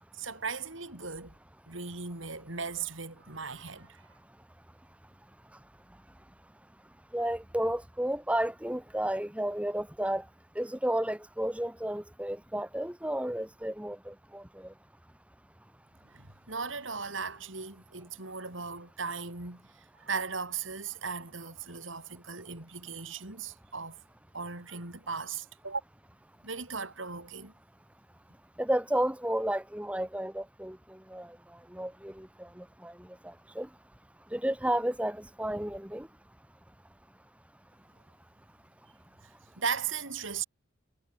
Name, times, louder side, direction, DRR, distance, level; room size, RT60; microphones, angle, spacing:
voice 1, 0.1-1.3 1.7-4.0 16.1-19.6 20.0-24.0 24.3-25.8 26.4-27.5 39.6-40.4, right 5 dB, 70° right, 4.8 m, -37 dB
voice 2, 7.1-10.2 10.6-14.4 28.6-30.8 31.1-31.3 31.7-32.3 32.8-32.9 33.6-33.7 34.3-36.1, right 1 dB, 5° right, 2.1 m, -32 dB
head